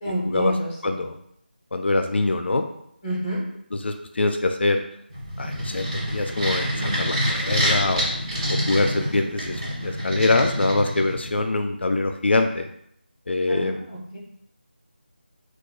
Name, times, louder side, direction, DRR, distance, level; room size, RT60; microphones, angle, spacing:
voice 1, 0.0-1.0 3.0-3.4 13.5-14.2, right 1 dB, 25° left, -4 dB, 0.8 m, -28 dB
voice 2, 0.8-1.1 1.7-2.6 3.8-4.8 5.4-8.2 8.5-12.7 13.3-13.8, left 2 dB, 85° left, 6 dB, 0.3 m, -24 dB
sound 1, 5.1-11.4, equal, 30° right, 1.3 m, -27 dB
4.2 x 2.3 x 2.2 m, 0.72 s
figure-of-eight pair, 175°, 6 cm